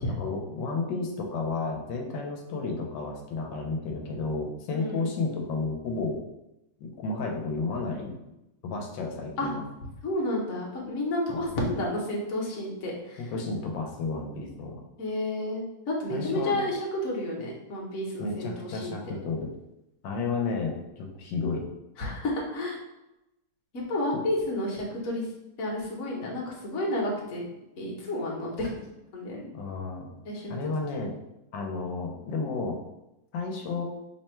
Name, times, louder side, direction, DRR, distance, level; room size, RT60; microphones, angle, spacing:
voice 1, 0.0-6.2 6.8-8.2 8.6-9.6 11.3-11.4 13.2-14.7 16.1-16.6 18.2-19.5 20.0-21.6 29.5-30.1 30.5-31.1 31.5-32.8 33.3-33.8, left 3 dB, 80° left, 1 dB, 1.3 m, -32 dB
voice 2, 4.7-5.0 9.4-9.5 10.0-13.3 15.0-18.9 22.0-22.8 23.7-25.3 25.6-27.4 27.8-28.8 29.1-29.5 30.2-30.6, left 1 dB, 50° left, -3 dB, 1.0 m, -31 dB
3.4 x 2.1 x 4.3 m, 0.92 s
omnidirectional pair, 2.0 m